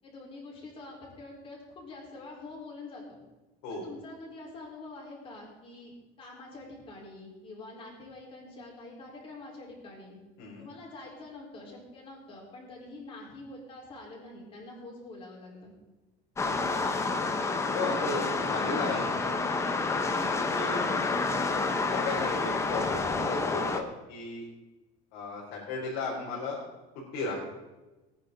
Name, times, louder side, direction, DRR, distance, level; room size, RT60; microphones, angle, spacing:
voice 1, 0.0-3.2 3.7-10.2 10.6-15.7, left 2 dB, 30° left, -2 dB, 4.5 m, -46 dB
sound 1, 16.4-23.8, left 3 dB, 15° left, 1.0 m, -29 dB
voice 2, 17.7-19.2 20.5-20.8 21.8-24.5 25.1-26.6 27.1-27.3, left 3 dB, 70° left, -5 dB, 3.8 m, -35 dB
19.5 x 9.9 x 4.0 m, 1.1 s
cardioid pair, 155°, 18 cm